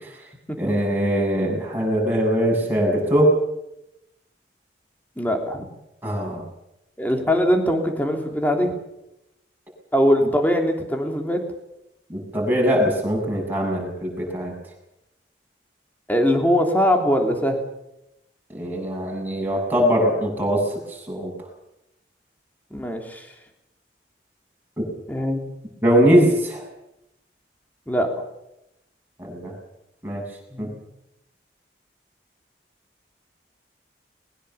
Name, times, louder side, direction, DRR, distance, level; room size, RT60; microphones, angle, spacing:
voice 1, 0.6-3.3 6.0-6.4 12.1-14.5 18.5-21.3 25.8-26.6 29.2-29.5 30.0-30.2 30.6-30.7, equal, 10° right, -2 dB, 7.5 m, -21 dB
voice 2, 5.2-5.7 7.0-8.7 9.9-11.4 16.1-17.6 22.7-23.3 25.1-25.4 27.9-28.1 30.5-30.8, equal, 10° left, 3 dB, 3.3 m, -21 dB
22.0 x 20.5 x 7.1 m, 0.86 s
head